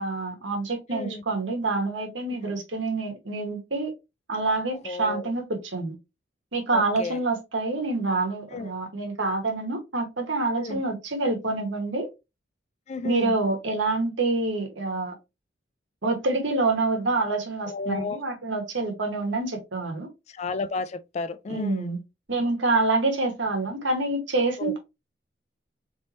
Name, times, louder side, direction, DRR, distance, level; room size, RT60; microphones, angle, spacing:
voice 1, 0.0-3.9 4.3-6.0 6.5-12.1 13.0-15.1 16.0-20.1 21.5-22.0 22.3-24.8, right 3 dB, 85° right, 1.3 m, -27 dB
voice 2, 0.9-1.2 2.3-2.6 4.8-5.3 6.7-7.2 8.5-8.7 10.5-10.8 12.9-13.4 17.7-18.2 20.3-21.9 24.6-24.8, left 4 dB, 35° left, 0.3 m, -33 dB
4.2 x 3.4 x 2.7 m
head